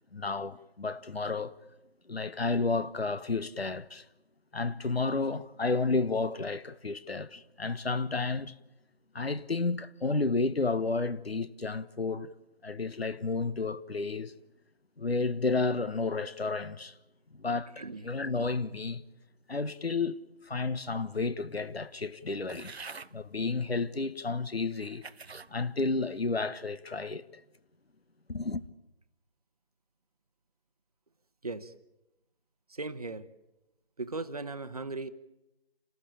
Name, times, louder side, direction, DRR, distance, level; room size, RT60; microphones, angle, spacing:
voice 1, 0.1-1.6 2.1-4.0 4.5-8.5 9.1-12.3 12.6-14.3 15.0-16.9 17.3-19.0 19.5-20.2 20.5-22.7 23.1-25.0 25.5-27.2 28.3-28.6, left 3 dB, 70° left, 1.3 m, -31 dB
sound 1, 22.5-23.1 23.9-24.0 24.7-25.5 26.1-26.5, right 4 dB, 85° right, 0.8 m, -46 dB
voice 2, 31.4-31.7 32.7-33.3 34.0-35.1, right 3 dB, 35° right, 1.0 m, -37 dB
29.0 x 13.0 x 8.7 m
figure-of-eight pair, 160°, 31 cm